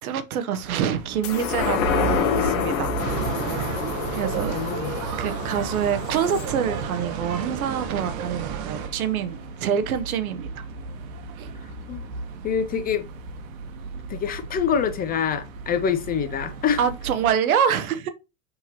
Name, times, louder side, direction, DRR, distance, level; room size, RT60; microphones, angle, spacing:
voice 1, 0.0-3.0 3.4-3.8 4.1-4.6 5.2-10.6 11.4-11.5 16.8-18.1, right 8 dB, 85° right, 0.8 m, -26 dB
sound 1, 0.6-17.3, right 4 dB, 70° right, 1.1 m, -38 dB
sound 2, 1.2-8.0 8.4-8.5, left 5 dB, 65° left, 1.1 m, -28 dB
sound 3, 3.0-8.9, right 7 dB, 45° right, 0.7 m, -32 dB
voice 2, 4.5-5.0 11.6-12.0 12.4-13.1 14.1-16.8, left 7 dB, 20° left, 0.4 m, -26 dB
6.3 x 2.9 x 2.9 m
hypercardioid pair, 110°, 42 cm